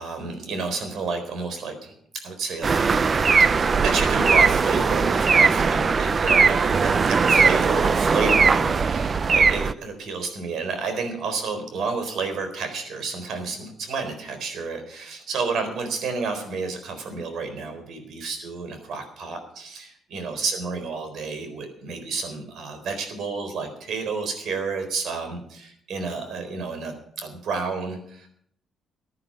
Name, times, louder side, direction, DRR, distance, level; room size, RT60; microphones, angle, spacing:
voice 1, 0.0-3.1 3.4-28.3, right 4 dB, 70° right, 7 dB, 4.0 m, -30 dB
sound 1, 2.6-9.7, right 5 dB, 40° right, 0.6 m, -19 dB
15.0 x 9.7 x 6.8 m, 0.68 s
cardioid pair, 90°, 0 cm